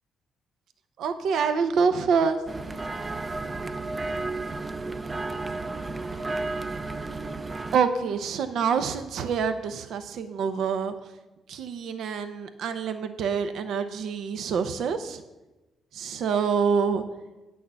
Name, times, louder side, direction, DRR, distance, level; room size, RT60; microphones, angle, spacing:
voice 1, 1.0-2.4 7.7-10.9 11.5-15.2 15.9-17.0, right 6 dB, 75° right, 9 dB, 0.7 m, -26 dB
sound 1, 2.5-7.8, right 3 dB, 25° right, 0.6 m, -32 dB
9.3 x 6.3 x 6.9 m, 1.1 s
cardioid pair, 90°, 0 cm